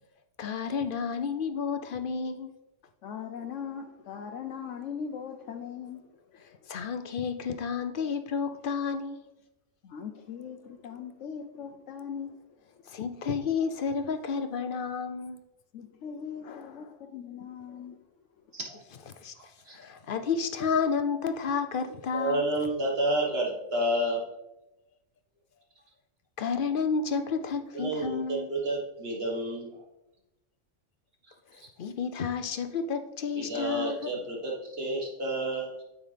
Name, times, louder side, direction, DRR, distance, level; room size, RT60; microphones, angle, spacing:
voice 1, 0.4-2.5 6.7-9.2 12.9-15.4 16.5-16.7 19.2-22.4 26.4-28.5 31.8-34.1, left 5 dB, 55° left, 0.7 m, -31 dB
voice 2, 3.0-6.1 6.4-6.7 9.8-12.4 15.7-18.0, left 7 dB, 80° left, 1.0 m, -40 dB
voice 3, 22.1-24.3 27.7-29.7 33.4-35.7, right 1 dB, 55° right, 1.7 m, -30 dB
9.4 x 7.3 x 3.3 m
omnidirectional pair, 1.3 m